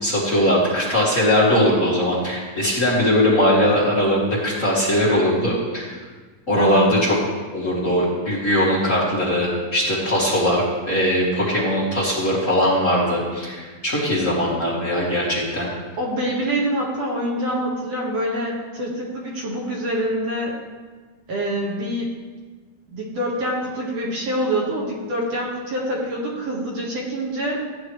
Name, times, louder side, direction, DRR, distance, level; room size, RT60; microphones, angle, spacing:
voice 1, 0.0-6.0 6.5-7.2 7.5-15.7, equal, 25° left, -8 dB, 2.4 m, -20 dB
voice 2, 6.5-6.9 16.0-20.6 21.3-22.1 22.9-27.6, equal, 60° right, -3 dB, 2.5 m, -25 dB
15.0 x 9.6 x 3.2 m, 1.4 s
omnidirectional pair, 3.5 m